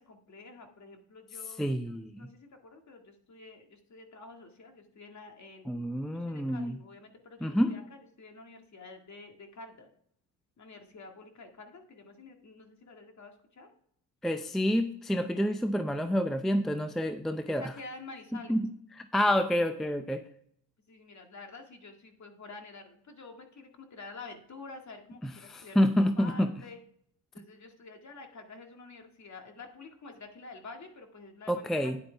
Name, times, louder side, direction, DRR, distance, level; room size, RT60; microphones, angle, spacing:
voice 1, 0.0-9.9 10.6-13.7 17.5-18.6 20.9-25.9 26.2-26.8 27.3-31.9, left 3 dB, 40° left, 4 dB, 2.0 m, -49 dB
voice 2, 1.6-2.3 5.7-6.8 7.4-7.7 14.2-17.7 18.5-18.7 19.0-20.2 25.2-26.5 31.5-32.0, equal, ahead, 8 dB, 0.5 m, -28 dB
10.0 x 8.5 x 3.4 m, 0.67 s
supercardioid pair, 70°, 43 cm